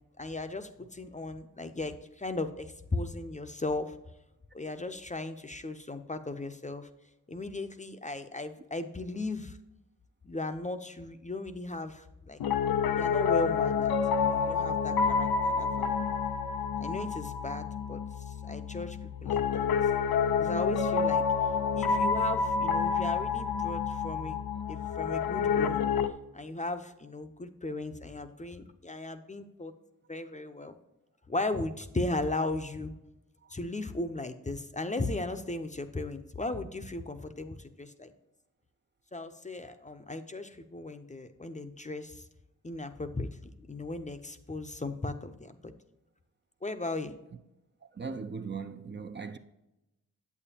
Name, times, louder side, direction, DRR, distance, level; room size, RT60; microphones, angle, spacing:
voice 1, 0.2-4.0 4.5-6.9 7.3-9.6 10.2-12.4 13.0-16.1 16.8-19.7 20.4-21.3 21.7-25.8 26.3-29.7 30.1-30.7 31.3-32.9 33.5-38.1 39.1-42.3 42.6-43.3 43.6-45.7 46.6-47.1, left 2 dB, 20° left, 0.7 m, -36 dB
Piano, 12.4-26.1, left 6 dB, 85° left, 0.5 m, -28 dB
voice 2, 47.9-49.4, right 5 dB, 30° right, 0.6 m, -39 dB
8.0 x 7.1 x 2.8 m
cardioid pair, 45°, 35 cm